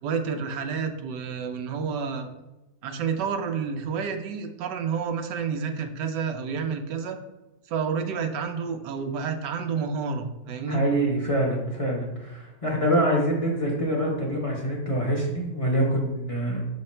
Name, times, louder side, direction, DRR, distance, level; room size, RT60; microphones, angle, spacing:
voice 1, 0.0-2.3 2.8-7.2 7.7-10.8, right 6 dB, 80° right, 6 dB, 1.4 m, -29 dB
voice 2, 10.7-16.6, right 1 dB, 25° left, -2 dB, 0.9 m, -25 dB
6.6 x 4.0 x 4.3 m, 1.0 s
omnidirectional pair, 1.8 m